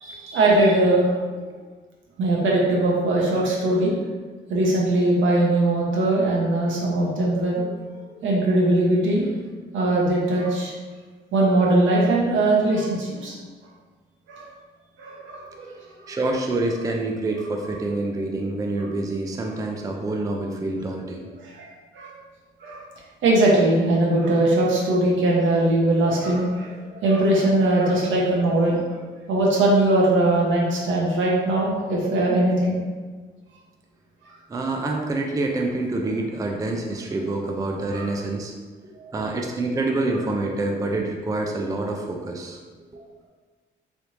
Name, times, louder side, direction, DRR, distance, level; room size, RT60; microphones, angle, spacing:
voice 1, 0.0-1.1 2.2-3.9 4.5-7.8 8.2-9.3 9.7-10.7 11.3-13.4 14.3-14.5 15.0-15.7 16.0-16.2 21.4-21.7 21.9-22.1 22.6-22.8 23.2-28.8 29.3-32.8 37.9-38.1, right 1 dB, 75° right, -3 dB, 0.9 m, -20 dB
voice 2, 16.1-21.3 34.5-38.5 39.1-42.6 42.9-43.0, right 2 dB, 15° right, 1 dB, 0.4 m, -27 dB
3.3 x 2.7 x 3.0 m, 1.4 s
cardioid pair, 90°, 20 cm